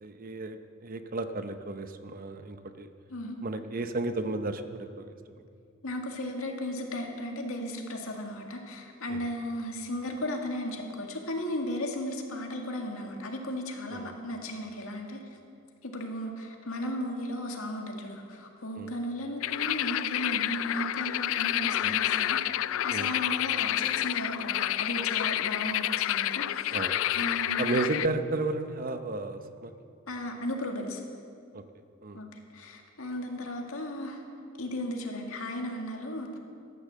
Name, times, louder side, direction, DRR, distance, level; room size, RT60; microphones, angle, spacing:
voice 1, 0.0-2.9 3.4-5.2 9.1-9.2 13.9-14.1 18.7-18.9 21.8-22.0 22.9-23.1 26.7-27.0 27.6-29.7 31.5-31.6 32.0-32.2, right 2 dB, 45° right, 9 dB, 0.7 m, -33 dB
voice 2, 5.8-15.2 15.8-26.8 27.1-28.0 30.1-31.0 32.1-32.3 32.5-34.2 34.6-36.4, left 1 dB, 90° left, 2 dB, 2.0 m, -35 dB
sound 1, 19.4-28.1, left 12 dB, 65° left, 0.3 m, -29 dB
13.5 x 10.5 x 7.4 m, 2.4 s
head